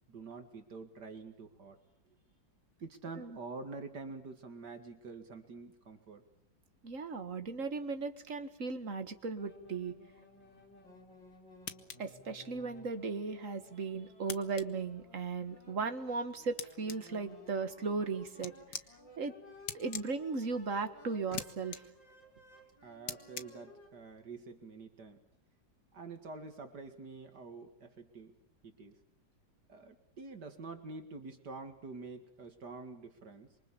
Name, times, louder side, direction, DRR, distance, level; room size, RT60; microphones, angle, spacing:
voice 1, 0.1-1.8 2.8-6.2 22.8-25.2 25.9-28.3 28.7-29.0 29.7-33.5, right 3 dB, 65° right, 7 dB, 2.6 m, -47 dB
voice 2, 6.8-9.9 12.0-18.5 19.2-19.3 19.7-21.8, right 4 dB, 45° right, 9 dB, 2.1 m, -37 dB
sound 1, 9.4-23.9, left 2 dB, 85° left, 6.5 m, -58 dB
sound 2, 11.7-12.0 14.3-14.7 16.6-17.0 18.4-18.9 19.7-20.1 21.3-21.5 21.7-21.8 23.1-23.5, left 8 dB, 65° left, 1.9 m, -40 dB
26.5 x 24.5 x 7.2 m, 0.74 s
omnidirectional pair, 2.0 m